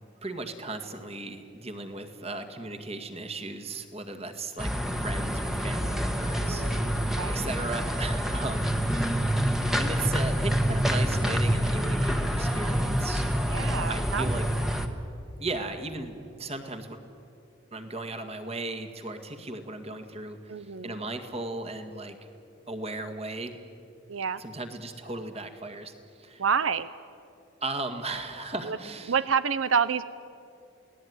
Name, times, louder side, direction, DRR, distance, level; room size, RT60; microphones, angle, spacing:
voice 1, 0.2-6.6 7.3-9.4 9.8-13.3 13.9-14.5 15.4-17.0 17.7-22.2 22.7-23.6 24.4-26.4 27.6-29.1, right 2 dB, 30° right, 7 dB, 2.0 m, -36 dB
sound 1, 4.6-14.9, equal, ahead, 1.4 m, -27 dB
voice 2, 6.3-7.4 13.4-14.3 20.5-21.0 24.1-24.4 26.4-26.9 28.6-28.8 29.1-30.1, right 6 dB, 85° right, 14 dB, 0.7 m, -28 dB
28.5 x 18.5 x 9.6 m, 2.6 s
head